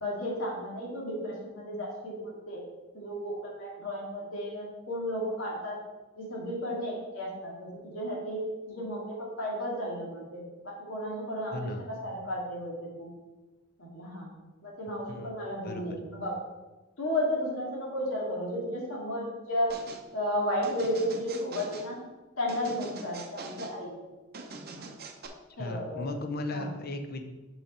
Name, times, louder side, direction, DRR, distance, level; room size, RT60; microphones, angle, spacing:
voice 1, 0.0-2.6 2.9-5.8 6.2-8.4 8.7-13.1 13.8-14.3 14.6-16.3 17.0-19.7 20.1-22.0 22.4-23.9 24.6-24.8 25.6-26.2 26.5-26.7, equal, 80° left, -3 dB, 2.2 m, -33 dB
voice 2, 11.5-11.9 15.1-15.3 15.6-15.8 25.6-27.2, left 2 dB, 50° left, 6 dB, 0.7 m, -35 dB
sound 1, 19.7-20.0 20.6-21.9 22.5-23.8 24.3-25.3, right 3 dB, 50° right, 0.7 m, -43 dB
6.0 x 6.0 x 4.3 m, 1.2 s
head